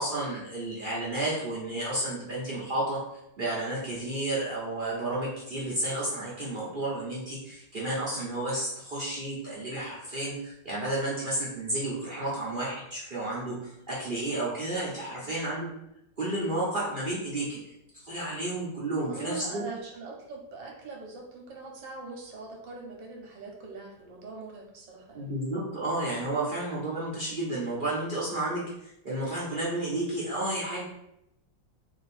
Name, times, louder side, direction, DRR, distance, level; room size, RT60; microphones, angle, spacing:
voice 1, 0.0-3.0 3.4-15.7 16.2-17.6 18.0-19.7 25.1-30.8, right 1 dB, 40° right, -7 dB, 0.8 m, -31 dB
voice 2, 19.0-25.3, right 4 dB, 75° right, 0 dB, 1.5 m, -42 dB
3.7 x 2.7 x 4.2 m, 0.80 s
omnidirectional pair, 2.0 m